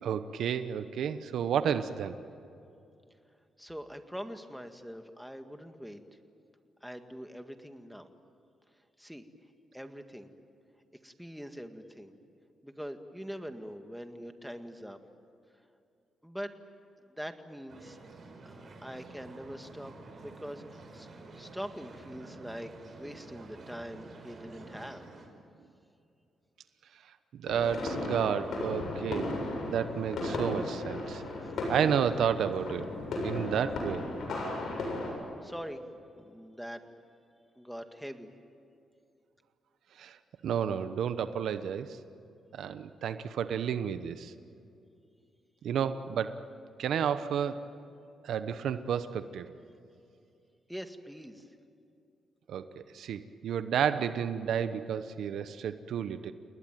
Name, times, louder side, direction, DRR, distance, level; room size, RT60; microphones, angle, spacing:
voice 1, 0.0-2.2 27.3-29.3 29.7-31.2 31.7-32.8 33.2-34.1 40.0-40.2 40.4-42.0 42.5-44.3 45.6-46.4 46.8-47.6 48.2-49.5 52.5-56.3, right 8 dB, 80° right, 11 dB, 1.0 m, -31 dB
voice 2, 3.6-6.0 6.8-8.1 9.0-9.2 9.7-10.3 11.0-12.1 12.6-15.0 16.2-16.5 17.1-18.0 18.5-19.9 20.2-25.0 31.4-31.5 35.4-35.8 36.2-36.8 37.6-38.3 50.7-51.4, equal, ahead, 6 dB, 2.0 m, -43 dB
sound 1, 17.7-25.3, right 3 dB, 50° right, 5.7 m, -49 dB
sound 2, 27.5-35.1, left 2 dB, 75° left, 7.5 m, -35 dB
29.5 x 20.0 x 9.3 m, 2.6 s
cardioid pair, 85°, 0 cm